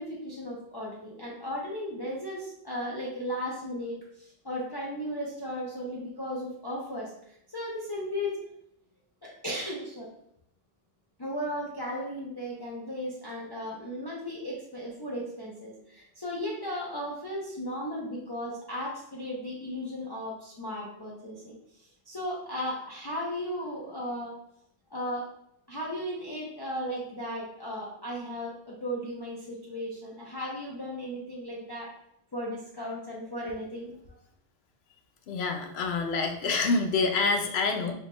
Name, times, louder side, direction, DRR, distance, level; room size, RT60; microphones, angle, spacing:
voice 1, 0.0-8.3 9.2-10.2 11.2-24.3 24.9-25.2 25.7-31.9 32.3-33.9, equal, 30° left, -5 dB, 0.5 m, -36 dB
voice 2, 35.3-37.9, left 4 dB, 80° left, 4 dB, 0.8 m, -27 dB
4.3 x 2.2 x 3.1 m, 0.75 s
omnidirectional pair, 1.0 m